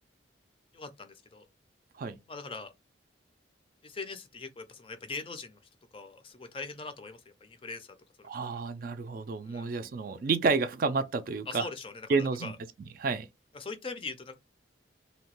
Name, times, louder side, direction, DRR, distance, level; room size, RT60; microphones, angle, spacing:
voice 1, 0.7-1.5 2.3-2.7 3.8-5.6 5.9-7.9 8.2-8.3 9.4-9.7 11.5-12.6 13.5-14.4, left 4 dB, 30° left, 0.4 m, -41 dB
voice 2, 8.3-11.7 12.1-12.5 13.0-13.3, right 4 dB, 45° right, 0.3 m, -30 dB
2.8 x 2.2 x 2.9 m
head